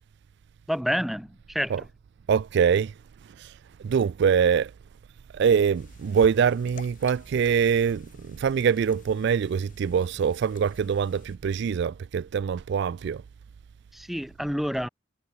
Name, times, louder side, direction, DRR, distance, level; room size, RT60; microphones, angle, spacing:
voice 1, 0.7-1.9 13.9-14.9, equal, ahead, 1.7 m, -29 dB
voice 2, 2.3-2.9 3.4-3.5 3.8-4.7 5.3-13.2, right 7 dB, 55° right, 0.3 m, -24 dB
sound 1, 5.7-11.4, left 3 dB, 40° left, 4.6 m, -51 dB
head